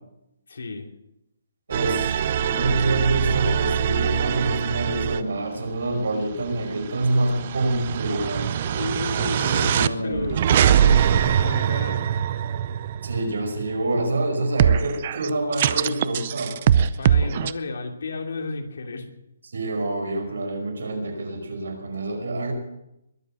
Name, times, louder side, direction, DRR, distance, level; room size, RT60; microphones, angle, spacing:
voice 1, 0.5-0.9 8.6-12.1 17.0-19.1, left 3 dB, 65° left, 4 dB, 2.8 m, -32 dB
sound 1, 1.7-5.2 5.7-13.9 14.6-17.5, right 9 dB, 30° right, 0.5 m, -23 dB
voice 2, 1.7-8.6 9.1-10.6 13.0-16.6 19.5-22.5, right 2 dB, 80° right, 3 dB, 5.6 m, -26 dB
22.0 x 7.6 x 7.8 m, 0.85 s
hypercardioid pair, 175°, 0 cm